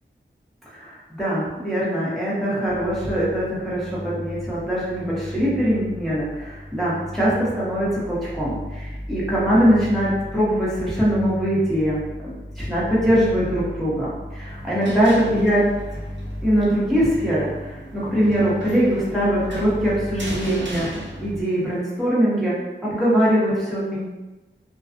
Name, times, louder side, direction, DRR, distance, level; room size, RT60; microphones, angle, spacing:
voice 1, 0.7-15.6 16.4-20.9 21.2-22.5 22.8-24.0, equal, ahead, -9 dB, 1.0 m, -22 dB
sound 1, 2.6-21.4, left 1 dB, 25° left, 0.7 m, -36 dB
sound 2, 14.5-21.8, right 1 dB, 65° right, 0.5 m, -39 dB
2.3 x 2.2 x 2.5 m, 1.1 s
wide cardioid pair, 45°, 20 cm